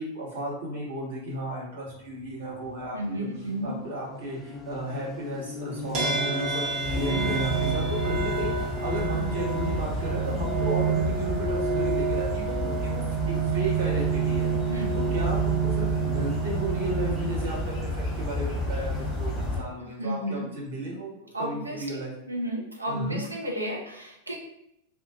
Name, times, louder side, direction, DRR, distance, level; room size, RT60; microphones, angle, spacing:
voice 1, 0.0-3.3 3.6-13.0 13.3-14.5 14.9-22.1 22.9-23.2, right 1 dB, 65° right, -5 dB, 1.0 m, -34 dB
sound 1, 1.9-9.5, equal, 20° left, 0.4 m, -38 dB
voice 2, 2.9-3.8 7.1-7.3 14.7-15.0 20.0-20.5 21.3-22.0 22.3-24.4, right 1 dB, 80° right, 0 dB, 0.5 m, -32 dB
sound 2, 5.9-19.5, right 6 dB, 40° right, 0.8 m, -29 dB
sound 3, 6.8-19.6, left 2 dB, 15° right, 1.0 m, -31 dB
2.4 x 2.3 x 2.7 m, 0.79 s
figure-of-eight pair, 90°, 0 cm